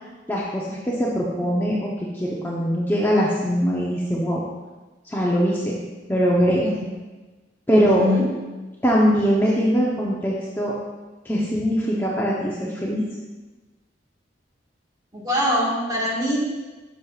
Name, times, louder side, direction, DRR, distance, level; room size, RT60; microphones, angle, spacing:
voice 1, 0.3-4.4 5.1-5.8 6.1-6.6 7.7-8.0 8.8-10.7 11.2-13.0, equal, 10° left, -5 dB, 0.8 m, -22 dB
voice 2, 7.7-8.3 15.1-16.4, left 1 dB, 20° right, -4 dB, 1.6 m, -23 dB
10.5 x 6.6 x 2.4 m, 1.2 s
head